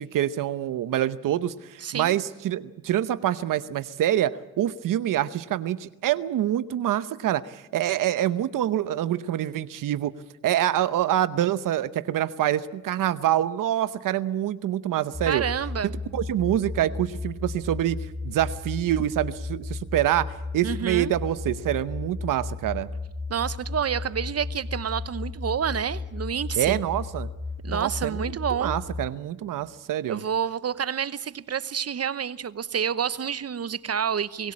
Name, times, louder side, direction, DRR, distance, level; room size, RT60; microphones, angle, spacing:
voice 1, 0.0-10.1 10.4-15.4 16.1-18.0 18.2-22.9 26.6-27.3 27.7-30.2, right 12 dB, 85° right, 14 dB, 0.9 m, -26 dB
voice 2, 1.8-2.1 15.3-15.9 20.6-21.1 23.3-26.8 27.6-28.8 30.1-34.5, right 7 dB, 50° right, 15 dB, 1.0 m, -28 dB
sound 1, 15.1-29.1, left 3 dB, 15° left, 3.7 m, -34 dB
24.5 x 16.5 x 8.6 m, 1.1 s
cardioid pair, 60°, 32 cm